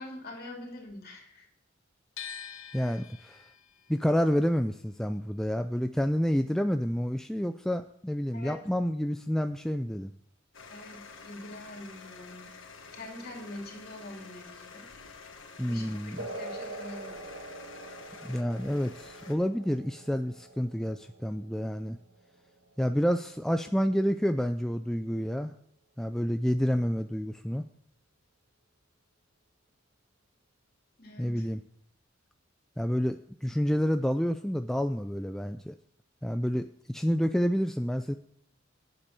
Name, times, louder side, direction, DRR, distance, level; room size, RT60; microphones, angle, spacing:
voice 1, 0.0-1.5 8.3-8.5 10.7-12.5 12.9-14.9 15.7-17.3 31.0-31.4, left 1 dB, 50° left, 0 dB, 2.8 m, -44 dB
sound 1, 2.2-8.2 8.5-9.8, left 8 dB, 85° left, 0.8 m, -48 dB
voice 2, 2.7-3.4 3.9-10.1 15.6-16.3 18.2-22.0 22.8-25.5 26.0-27.7 31.2-31.6 32.8-35.8 36.2-38.1, equal, ahead, 7 dB, 0.3 m, -29 dB
sound 2, 10.5-19.4, left 4 dB, 70° left, 1.5 m, -49 dB
sound 3, 16.2-24.2, right 2 dB, 70° right, 2.0 m, -45 dB
8.6 x 8.1 x 6.6 m, 0.66 s
head